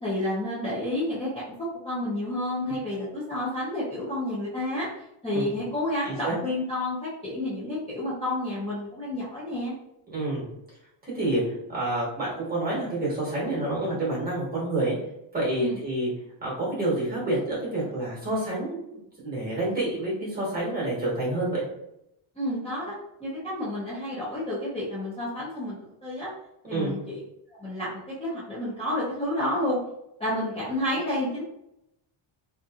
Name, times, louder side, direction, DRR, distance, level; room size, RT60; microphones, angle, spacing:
voice 1, 0.0-4.9 5.2-9.7 15.6-15.8 22.4-26.3 26.7-27.2 27.6-29.8 30.2-31.4, left 1 dB, 15° left, -10 dB, 0.6 m, -30 dB
voice 2, 6.0-6.4 10.1-10.5 11.0-14.9 15.3-16.1 16.4-21.6 26.7-27.0, right 2 dB, 20° right, -5 dB, 1.2 m, -28 dB
2.8 x 2.7 x 2.4 m, 0.82 s
cardioid pair, 160°, 49 cm